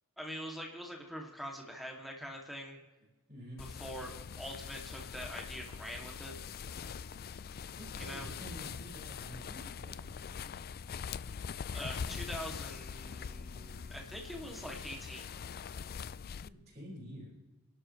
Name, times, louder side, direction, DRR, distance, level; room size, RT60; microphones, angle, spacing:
voice 1, 0.2-2.8 3.6-6.3 8.0-8.3 11.7-15.2, equal, ahead, -1 dB, 2.6 m, -44 dB
voice 2, 3.3-3.6 7.8-10.7 16.4-17.3, equal, 30° right, -9 dB, 5.9 m, -49 dB
sound 1, 3.6-16.5, left 6 dB, 45° left, 0.4 m, -43 dB
29.5 x 12.0 x 3.3 m, 1.1 s
head